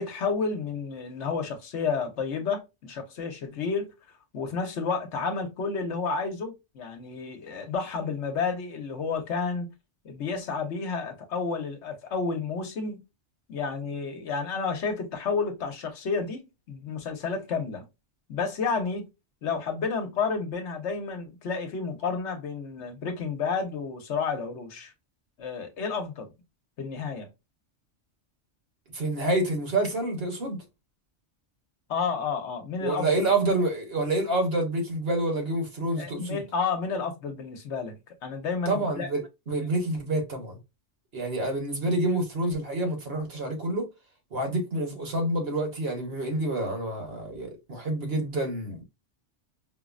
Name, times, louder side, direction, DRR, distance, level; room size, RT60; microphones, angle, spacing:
voice 1, 0.0-3.9 4.3-9.7 10.0-13.0 13.5-17.8 18.3-19.0 19.4-24.9 25.4-26.3 26.8-27.3 31.9-33.1 36.0-38.0 38.2-39.1, left 5 dB, 70° left, 1.1 m, -31 dB
voice 2, 28.9-30.6 32.8-36.4 38.7-40.6 41.1-43.9 44.3-48.8, right 2 dB, 55° right, 1.3 m, -28 dB
5.2 x 2.0 x 2.4 m
omnidirectional pair, 1.2 m